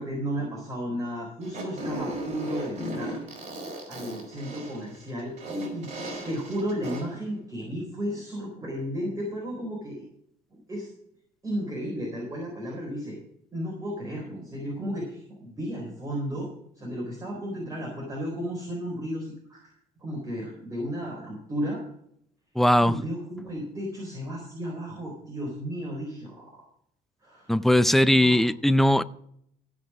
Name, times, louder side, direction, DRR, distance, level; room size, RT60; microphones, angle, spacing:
voice 1, 0.0-3.2 3.9-10.1 10.7-10.9 11.4-13.2 13.5-16.5 16.8-19.7 20.0-21.8 22.8-26.6 27.2-27.6 28.1-28.4, equal, 20° right, 4.2 m, -34 dB
Fart, 1.4-7.2, right 1 dB, 45° right, 4.0 m, -36 dB
voice 2, 22.6-23.0 27.5-29.0, left 1 dB, ahead, 0.4 m, -19 dB
15.5 x 5.5 x 6.1 m
cardioid pair, 110°, 17 cm